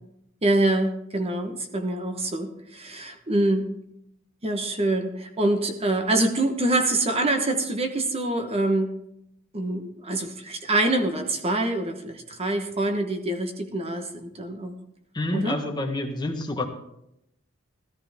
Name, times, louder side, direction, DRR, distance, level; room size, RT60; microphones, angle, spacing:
voice 1, 0.4-3.7 4.4-9.0 9.5-14.8 15.3-15.6, right 2 dB, 30° right, 5 dB, 1.1 m, -25 dB
voice 2, 15.1-16.7, left 2 dB, 20° left, 4 dB, 1.3 m, -28 dB
14.0 x 14.0 x 3.6 m, 0.81 s
head